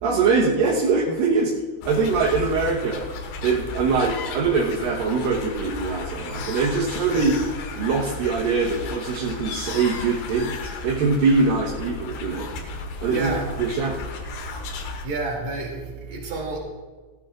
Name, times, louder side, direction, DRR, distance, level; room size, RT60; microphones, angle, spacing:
voice 1, 0.0-1.5 1.8-3.1 3.4-7.3 7.8-12.5 13.0-13.3 13.6-14.0, right 4 dB, 65° right, -4 dB, 2.5 m, -23 dB
sound 1, 1.8-15.1, left 4 dB, 70° left, 3.4 m, -34 dB
voice 2, 13.1-13.4 15.0-16.6, right 3 dB, 45° right, -1 dB, 3.6 m, -29 dB
20.5 x 15.0 x 2.5 m, 1.3 s
omnidirectional pair, 5.1 m